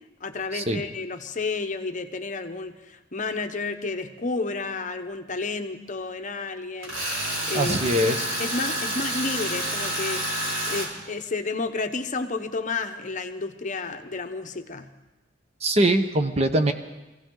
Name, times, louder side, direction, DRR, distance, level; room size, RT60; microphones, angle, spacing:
voice 1, 0.2-7.9 8.4-14.9, left 3 dB, 40° left, 7 dB, 0.9 m, -31 dB
Tools, 6.8-10.9, right 1 dB, 85° right, 4.0 m, -29 dB
voice 2, 7.5-8.4 15.6-16.7, right 1 dB, 35° right, 7 dB, 0.9 m, -22 dB
23.5 x 16.0 x 3.8 m, 1.1 s
head